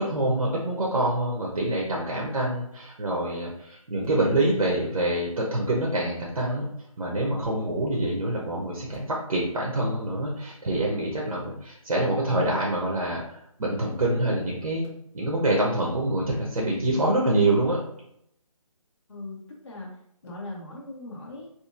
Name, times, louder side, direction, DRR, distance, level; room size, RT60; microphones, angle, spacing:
voice 1, 0.0-6.7 7.0-14.9 15.1-17.8, right 1 dB, 70° right, -2 dB, 0.8 m, -26 dB
voice 2, 19.1-21.5, left 2 dB, 50° left, -3 dB, 0.6 m, -40 dB
2.8 x 2.5 x 2.4 m, 0.74 s
hypercardioid pair, 175°, 19 cm